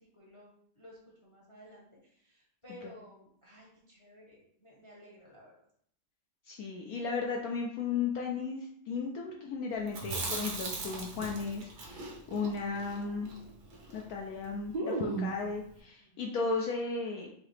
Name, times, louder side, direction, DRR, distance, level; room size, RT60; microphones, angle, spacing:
voice 1, 0.0-5.5 16.0-16.3, left 1 dB, 25° left, -4 dB, 0.7 m, -55 dB
voice 2, 6.5-13.3 13.9-17.3, left 4 dB, 70° left, 0 dB, 0.9 m, -35 dB
Chewing mastication, 9.9-14.1 14.3-14.4 14.7-15.5, right 3 dB, 70° right, 1.5 m, -37 dB
4.8 x 2.7 x 3.2 m, 0.66 s
omnidirectional pair, 1.8 m